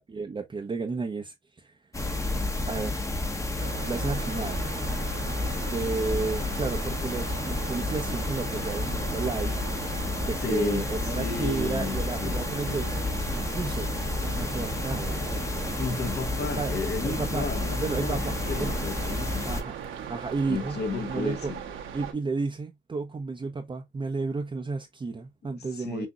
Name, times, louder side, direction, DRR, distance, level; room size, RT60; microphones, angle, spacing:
voice 1, 0.0-1.8 2.7-3.0 3.8-4.6 5.6-9.5 10.2-13.9 14.2-15.8 16.4-16.8 17.0-17.5 17.8-18.8 19.4-19.8 20.1-20.8 21.1-21.5 21.9-26.1, right 4 dB, 25° right, 0.7 m, -32 dB
sound 1, 1.9-19.6, left 2 dB, 15° left, 0.9 m, -31 dB
sound 2, 3.6-22.1, right 8 dB, 80° right, 1.3 m, -39 dB
voice 2, 10.4-10.9 11.2-12.9 15.8-19.5 20.5-21.6 25.6-26.1, left 4 dB, 55° left, 1.3 m, -33 dB
6.1 x 2.7 x 2.4 m
cardioid pair, 90°, 20 cm